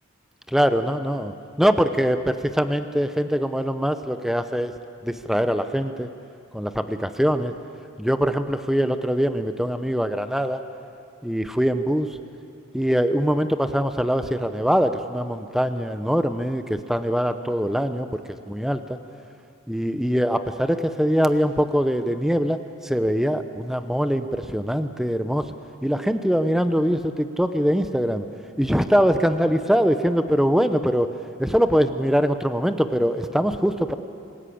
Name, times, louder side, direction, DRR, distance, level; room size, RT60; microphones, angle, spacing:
voice 1, 0.5-4.7 5.0-6.1 6.5-7.5 8.0-10.6 11.2-12.1 12.7-18.2 18.5-19.0 19.7-25.4 25.8-28.2 28.6-31.1 31.4-33.9, equal, ahead, 9 dB, 0.8 m, -23 dB
26.5 x 16.5 x 8.6 m, 2.5 s
head